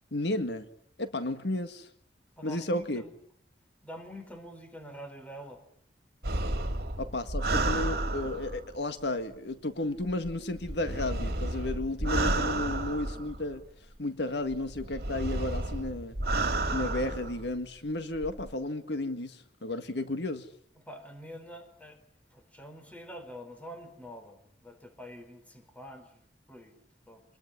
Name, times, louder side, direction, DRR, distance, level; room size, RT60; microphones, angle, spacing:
voice 1, 0.1-0.7 1.0-1.9 2.4-3.0 7.0-13.6 14.0-16.2 16.7-20.5, left 2 dB, 70° left, 9 dB, 1.8 m, -33 dB
voice 2, 2.4-3.1 3.8-5.6 20.8-22.0 22.3-26.8 27.1-27.2, equal, 10° left, 7 dB, 4.5 m, -46 dB
sound 1, 6.2-8.8 10.0-13.6 14.5-17.5 18.1-18.5, right 2 dB, 60° right, 2.9 m, -31 dB
27.0 x 20.5 x 9.9 m, 0.66 s
head